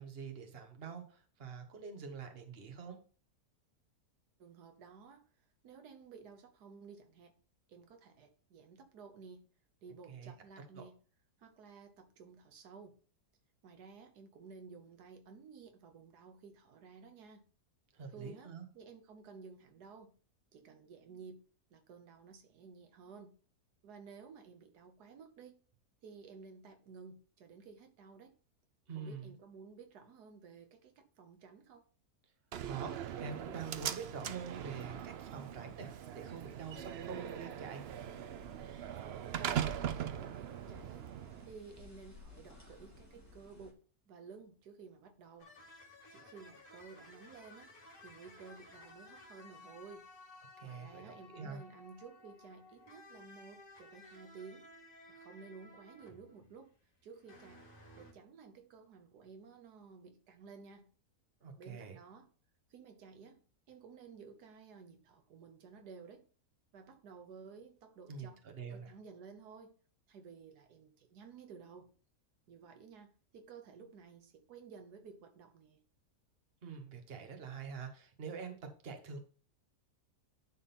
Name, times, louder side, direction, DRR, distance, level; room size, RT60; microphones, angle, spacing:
voice 1, 0.0-3.0 10.1-10.8 17.9-18.6 28.9-29.3 32.7-37.8 50.6-51.6 61.4-62.0 68.1-68.9 76.6-78.5 78.8-79.2, right 5 dB, 40° right, 1.3 m, -45 dB
voice 2, 4.4-7.3 7.7-9.4 9.8-10.9 11.4-12.9 13.6-17.4 18.1-20.1 20.5-21.4 21.7-23.3 23.8-25.6 26.0-28.3 28.9-31.8 39.4-41.1 41.5-43.8 44.1-45.5 46.1-47.7 48.0-50.0 50.6-54.7 55.1-56.7 57.0-57.6 57.9-60.9 61.6-62.3 62.7-63.4 63.7-66.3 66.7-68.4 68.7-69.8 70.1-71.9 72.5-75.8, right 5 dB, 85° right, 1.5 m, -54 dB
Slam, 32.5-41.5, right 9 dB, 65° right, 0.6 m, -41 dB
sound 1, 37.9-43.7, left 2 dB, 10° left, 1.9 m, -57 dB
sound 2, 45.4-56.6 57.0-58.1, left 2 dB, 55° left, 2.9 m, -57 dB
11.0 x 3.8 x 4.2 m
omnidirectional pair, 1.7 m